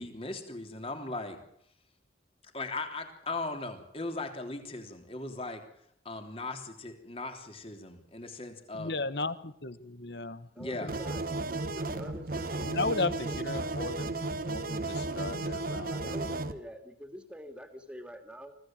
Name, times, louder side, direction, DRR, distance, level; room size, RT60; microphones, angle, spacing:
voice 1, 0.0-1.4 2.5-5.6 6.1-8.9 10.6-10.9, left 2 dB, 30° left, 5 dB, 3.3 m, -38 dB
voice 2, 8.8-10.9 12.6-14.1 14.4-16.2, left 3 dB, 60° left, 14 dB, 1.4 m, -35 dB
voice 3, 10.5-11.2 11.7-12.3 12.8-14.1 15.7-18.5, equal, 5° right, 7 dB, 2.7 m, -45 dB
sound 1, 10.9-16.5, right 2 dB, 50° right, 1.4 m, -34 dB
25.0 x 16.5 x 7.6 m, 0.71 s
head